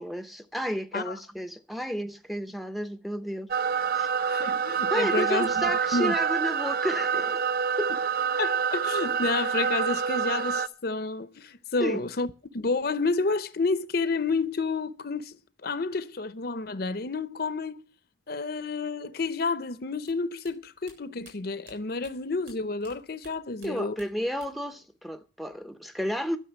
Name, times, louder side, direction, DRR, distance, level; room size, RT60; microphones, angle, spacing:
voice 1, 0.0-3.5 3.9-4.1 4.9-7.5 7.8-7.9 11.8-12.1 23.6-26.4, equal, ahead, 0.6 m, -32 dB
sound 1, 3.5-10.7, right 6 dB, 50° right, 0.6 m, -27 dB
voice 2, 4.3-6.1 7.9-8.0 8.4-12.3 12.5-15.4 15.6-17.8 18.3-24.0, left 3 dB, 50° left, 0.7 m, -30 dB
sound 2, 20.0-22.9 23.2-24.7 25.0-25.7, right 3 dB, 65° right, 7.6 m, -55 dB
12.0 x 6.6 x 9.4 m
head